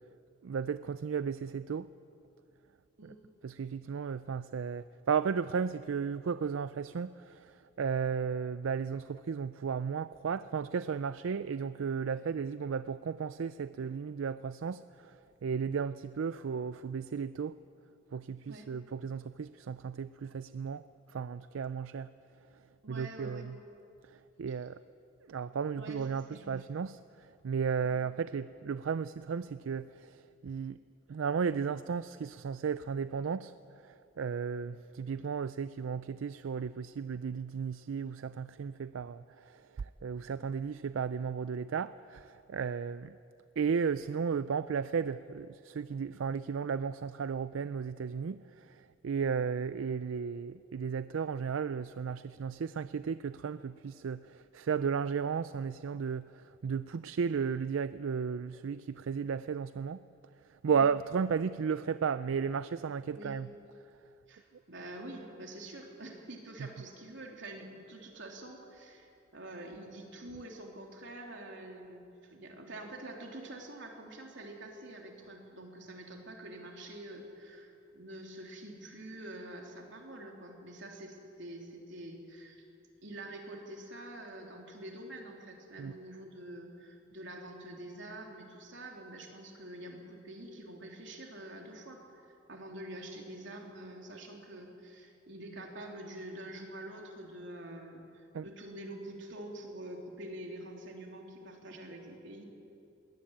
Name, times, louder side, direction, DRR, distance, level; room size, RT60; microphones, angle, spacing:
voice 1, 0.4-1.9 3.0-3.1 3.4-17.5 18.1-20.8 21.1-22.1 22.9-23.6 24.4-24.8 25.3-30.8 31.1-33.5 33.8-43.2 43.6-60.0 60.6-63.5 85.8-85.9 98.3-98.5, right 6 dB, 85° right, 15 dB, 0.4 m, -34 dB
voice 2, 22.8-23.4 25.8-26.6 60.7-60.8 63.1-63.4 64.3-82.6 83.0-102.4, right 1 dB, 65° right, 1 dB, 3.4 m, -46 dB
21.5 x 17.0 x 8.9 m, 2.7 s
head